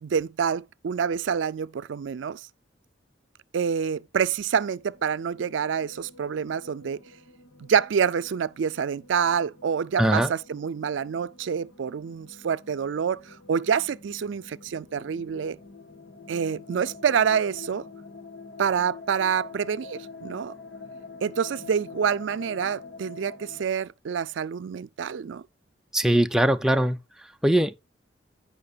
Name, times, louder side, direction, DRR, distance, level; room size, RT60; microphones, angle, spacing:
voice 1, 0.0-2.4 3.5-7.0 7.7-15.6 16.3-17.8 18.6-20.5 21.2-25.4, right 7 dB, 80° right, 0.4 m, -27 dB
sound 1, 4.3-23.6, left 4 dB, 70° left, 1.8 m, -46 dB
voice 2, 10.0-10.3 25.9-27.0 27.4-27.7, right 1 dB, 5° right, 0.5 m, -21 dB
15.5 x 5.7 x 2.3 m
head